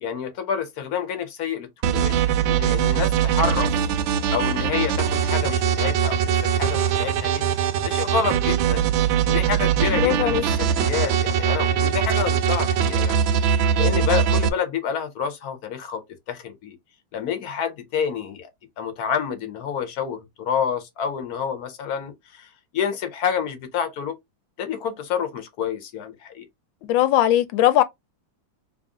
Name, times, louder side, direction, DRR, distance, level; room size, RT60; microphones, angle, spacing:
voice 1, 0.0-3.7 4.3-7.5 7.8-8.9 9.3-13.2 13.8-16.8 17.1-18.5 18.8-24.2 24.6-26.5, left 7 dB, 60° left, 1.1 m, -28 dB
sound 1, 1.8-14.5, right 8 dB, 80° right, 1.3 m, -21 dB
voice 2, 9.9-10.4 26.9-27.8, left 13 dB, 85° left, 1.3 m, -19 dB
3.5 x 2.5 x 3.5 m
omnidirectional pair, 2.1 m